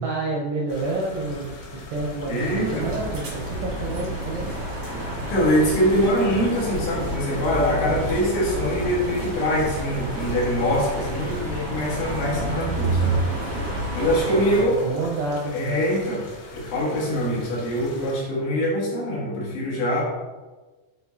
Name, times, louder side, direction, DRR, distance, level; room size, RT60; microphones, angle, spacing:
voice 1, 0.0-4.5 13.6-13.9 14.3-15.8, right 3 dB, 80° right, -3 dB, 2.4 m, -29 dB
sound 1, 0.7-18.1, left 3 dB, 85° left, 4.0 m, -40 dB
voice 2, 2.3-2.9 5.3-13.2 13.9-14.8 15.5-16.2 16.5-20.0, equal, 70° left, -5 dB, 3.6 m, -23 dB
sound 2, 2.3-14.6, right 2 dB, 55° right, 1.3 m, -29 dB
8.7 x 4.3 x 2.8 m, 1.2 s
omnidirectional pair, 5.8 m